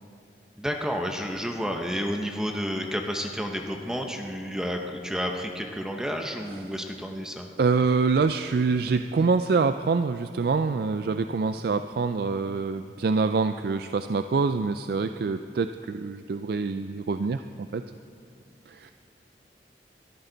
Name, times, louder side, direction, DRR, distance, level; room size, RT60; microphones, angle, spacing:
voice 1, 0.6-7.5, equal, 5° right, 3 dB, 0.8 m, -31 dB
voice 2, 7.6-17.4 17.7-17.8 18.7-18.9, right 4 dB, 60° right, 9 dB, 0.4 m, -25 dB
22.0 x 13.5 x 4.0 m, 2.6 s
head